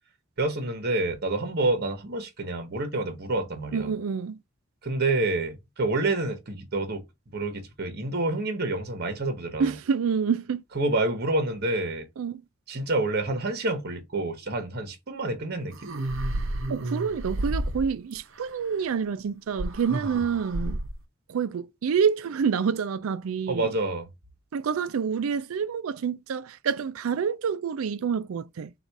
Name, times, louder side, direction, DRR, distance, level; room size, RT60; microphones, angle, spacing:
voice 1, 0.4-3.9 4.8-7.0 7.3-9.8 10.7-12.1 12.7-15.9 23.5-24.1, right 2 dB, 50° right, 1.0 m, -28 dB
voice 2, 3.7-4.4 9.6-10.6 12.2-12.4 16.7-20.8 21.3-23.7 24.5-28.7, right 6 dB, 85° right, 0.4 m, -27 dB
sound 1, 15.7-18.2 19.6-21.0, right 1 dB, 65° right, 0.8 m, -31 dB
4.0 x 2.4 x 4.5 m
head